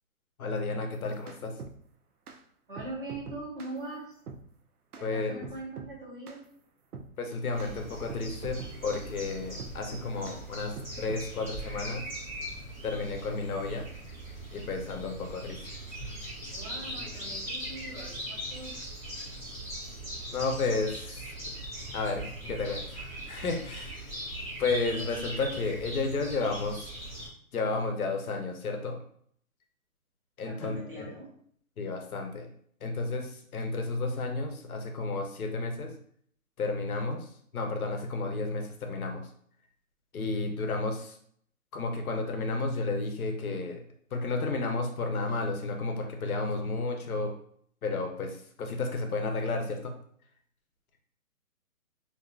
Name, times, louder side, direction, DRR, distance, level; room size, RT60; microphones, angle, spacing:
voice 1, 0.4-1.5 5.0-5.4 7.2-12.0 12.8-13.9 14.5-15.6 20.3-21.3 21.9-24.1 24.6-26.9 27.5-29.0 30.4-31.2 31.8-32.5 32.8-35.9 36.6-39.3 40.1-41.2 41.7-43.8 44.1-47.3 47.8-49.9, left 3 dB, 75° left, 3 dB, 0.7 m, -32 dB
sound 1, 0.9-1.8 2.3-2.4 2.8-3.8 4.3-4.5 4.9-5.1 5.4-6.0 6.3-6.4 6.9-7.1 7.6-7.7 8.1-9.1 9.6-10.4 10.8-11.3, right 5 dB, 90° right, 0.6 m, -44 dB
voice 2, 2.7-4.2 5.0-6.5 16.5-18.8 30.5-31.4, right 2 dB, 40° right, -4 dB, 0.7 m, -42 dB
sound 2, 7.5-27.3, right 1 dB, 10° right, 0.9 m, -40 dB
2.6 x 2.5 x 2.3 m, 0.62 s
hypercardioid pair, 175°, 43 cm